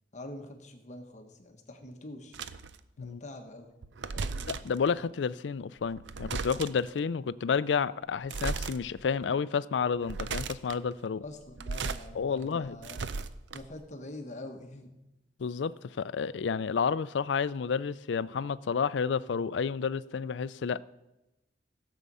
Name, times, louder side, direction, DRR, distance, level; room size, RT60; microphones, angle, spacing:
voice 1, 0.1-2.4 3.0-3.7 4.1-4.6 11.2-13.0 13.5-14.9, left 1 dB, 40° left, 1.4 m, -45 dB
sound 1, 2.3-2.8 3.8-4.8 5.8-6.9 8.2-8.8 9.2-9.3 9.9-10.8 11.4-12.0 12.4-13.8, right 4 dB, 85° right, 0.6 m, -36 dB
voice 2, 4.5-11.2 12.1-12.8 15.4-20.8, left 6 dB, 90° left, 0.4 m, -30 dB
16.0 x 7.4 x 5.5 m
head